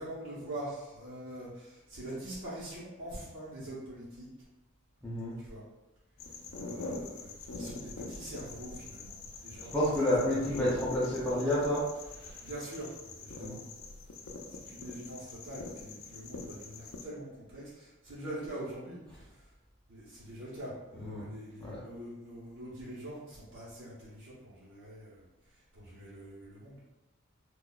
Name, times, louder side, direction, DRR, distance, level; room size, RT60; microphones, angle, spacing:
voice 1, 0.0-4.3 5.4-5.6 6.6-10.2 10.6-10.7 12.4-13.6 14.5-19.5 19.9-26.8, right 1 dB, 70° right, -10 dB, 0.9 m, -44 dB
voice 2, 5.0-5.3 9.7-11.8 12.1-12.4 13.4-13.6 20.9-21.3 21.6-21.8, left 1 dB, 5° left, -10 dB, 0.6 m, -30 dB
sound 1, 6.2-17.0, left 3 dB, 85° left, 0.5 m, -44 dB
4.0 x 2.3 x 2.3 m, 1.0 s
head